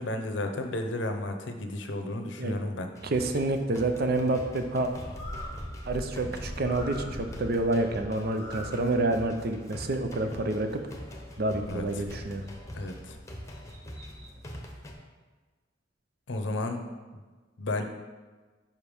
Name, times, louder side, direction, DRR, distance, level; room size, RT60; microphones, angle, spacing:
voice 1, 0.0-2.9 11.7-11.8 12.7-13.2 16.3-16.8 17.6-17.8, left 2 dB, 75° left, 5 dB, 0.7 m, -32 dB
sound 1, 3.0-14.9, equal, 15° left, 0.8 m, -43 dB
voice 2, 3.0-4.9 5.9-10.8 11.4-12.4, right 2 dB, 55° right, 7 dB, 0.6 m, -28 dB
Bird, 4.8-14.4, equal, 75° right, 2.0 m, -44 dB
5.5 x 5.0 x 5.4 m, 1.3 s
head